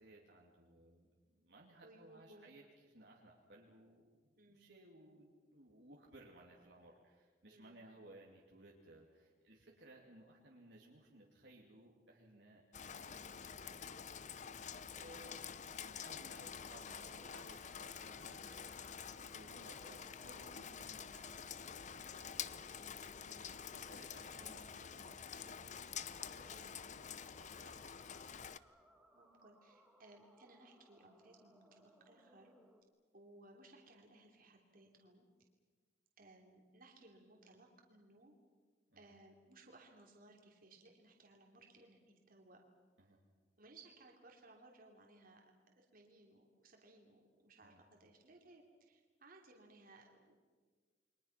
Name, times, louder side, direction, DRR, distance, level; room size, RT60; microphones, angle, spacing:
voice 1, 0.0-15.4 16.0-18.8 19.3-23.1 23.7-24.7 24.9-28.3 38.9-39.1 43.0-43.2 47.6-47.8, right 1 dB, 65° right, -2 dB, 2.8 m, -61 dB
voice 2, 1.8-2.5 4.3-4.7 7.5-7.8 13.0-13.3 18.9-19.3 23.2-23.5 24.3-24.9 26.5-26.8 29.1-32.5 33.1-35.2 36.2-38.3 39.0-42.0 42.3-42.6 43.6-45.4 45.7-50.3, right 2 dB, 50° right, 1 dB, 3.1 m, -62 dB
Rain, 12.7-28.6, left 7 dB, 40° left, 0.6 m, -48 dB
sound 1, 15.5-32.8, equal, 5° right, 2.2 m, -68 dB
29.5 x 23.5 x 5.9 m, 1.5 s
head